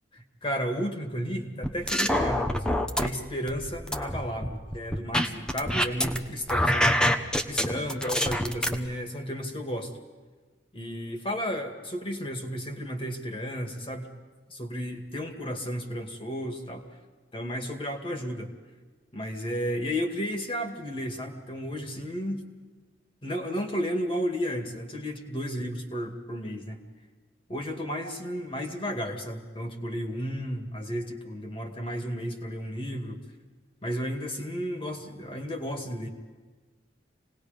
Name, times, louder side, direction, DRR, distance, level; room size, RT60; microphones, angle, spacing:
voice 1, 0.4-6.9 7.5-9.9 10.7-14.1 14.5-16.8 17.3-18.5 19.1-22.4 23.2-26.8 27.5-33.2 33.8-36.1, equal, 30° left, 3 dB, 2.3 m, -33 dB
sound 1, 1.6-3.1 3.5-6.2 6.5-8.7, equal, 5° left, 1.1 m, -25 dB
27.0 x 19.5 x 5.3 m, 1.4 s
head